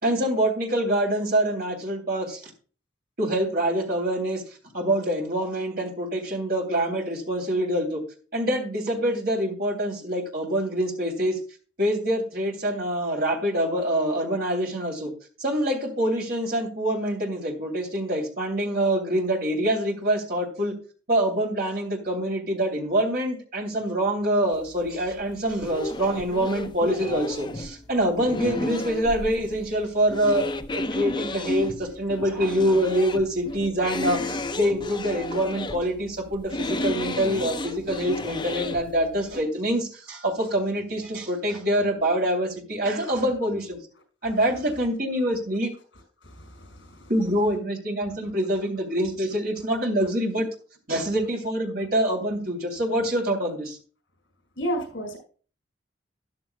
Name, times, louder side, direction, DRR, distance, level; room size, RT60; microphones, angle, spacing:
voice 1, 0.0-2.4 3.2-4.4 4.7-8.0 8.3-11.4 11.8-15.1 15.4-20.7 21.1-30.5 30.7-43.8 44.2-45.7 47.1-50.5 50.9-53.8, right 1 dB, 50° right, 2 dB, 3.0 m, -25 dB
sound 1, 24.5-39.4, left 1 dB, 25° left, 0.6 m, -33 dB
voice 2, 46.2-47.1 54.6-55.2, equal, 70° left, 3 dB, 5.1 m, -32 dB
13.0 x 11.0 x 2.2 m, 0.37 s
head